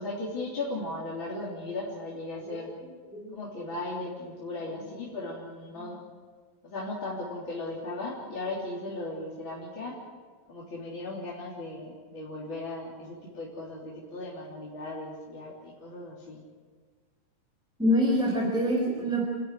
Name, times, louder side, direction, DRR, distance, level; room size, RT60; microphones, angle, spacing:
voice 1, 0.0-2.7 3.3-6.0 6.6-10.0 10.5-16.4, left 2 dB, 35° left, -6 dB, 3.9 m, -37 dB
voice 2, 17.8-19.2, equal, ahead, -2 dB, 3.8 m, -25 dB
29.0 x 12.0 x 10.0 m, 1.5 s
omnidirectional pair, 4.0 m